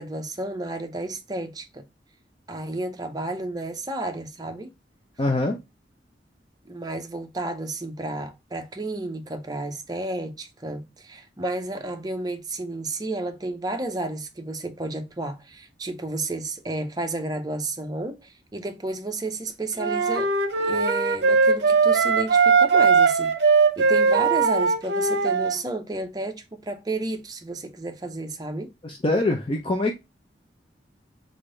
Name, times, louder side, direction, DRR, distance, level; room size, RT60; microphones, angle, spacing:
voice 1, 0.0-1.8 2.5-4.7 6.7-28.7, right 2 dB, 20° right, 0.6 m, -32 dB
voice 2, 5.2-5.6 28.8-29.9, left 2 dB, 30° left, 0.6 m, -24 dB
sound 1, 19.8-25.6, right 5 dB, 65° right, 0.7 m, -20 dB
3.7 x 3.4 x 3.8 m
head